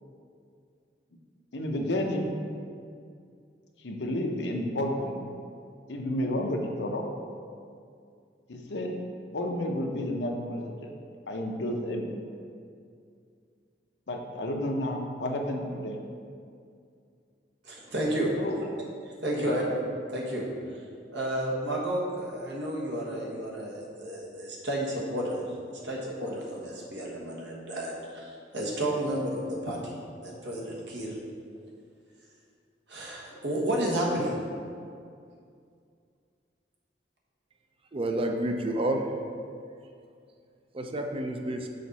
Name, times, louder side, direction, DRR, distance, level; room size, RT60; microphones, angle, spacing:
voice 1, 1.5-2.3 3.8-5.3 5.9-7.0 8.5-8.9 9.3-10.9 11.3-12.1 14.1-16.0 18.4-18.6 19.4-19.5, left 1 dB, 75° left, 2 dB, 0.8 m, -31 dB
voice 2, 17.6-18.3 19.2-19.6 20.1-20.4 21.1-30.0 30.2-31.2 32.9-34.3, right 1 dB, 70° right, -3 dB, 1.3 m, -31 dB
voice 3, 37.9-39.2 40.7-41.7, right 1 dB, 30° right, 3 dB, 0.5 m, -29 dB
6.5 x 5.1 x 4.1 m, 2.3 s
head